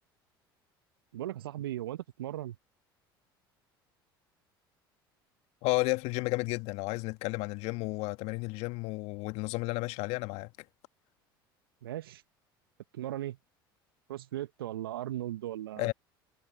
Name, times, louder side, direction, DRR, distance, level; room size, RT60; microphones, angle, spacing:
voice 1, 1.1-2.6 11.8-12.2 12.9-13.4 14.1-15.9, right 13 dB, 80° right, 1.2 m, -37 dB
voice 2, 5.6-10.5 15.8-15.9, left 23 dB, 60° left, 1.4 m, -32 dB
hypercardioid pair, 70°, 12 cm